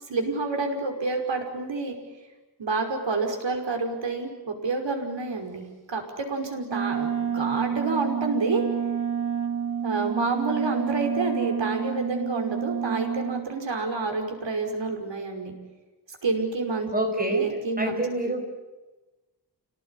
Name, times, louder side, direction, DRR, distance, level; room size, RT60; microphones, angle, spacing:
voice 1, 0.1-2.0 2.6-8.7 9.8-15.5 16.2-16.9 17.3-18.3, right 3 dB, 80° right, 4 dB, 5.6 m, -28 dB
Wind instrument woodwind instrument, 6.7-13.5, right 8 dB, 45° right, 2.9 m, -29 dB
voice 2, 16.9-17.5 17.8-18.4, right 1 dB, 20° right, 4 dB, 5.9 m, -27 dB
29.0 x 18.5 x 9.9 m, 1.1 s
wide cardioid pair, 140°, 44 cm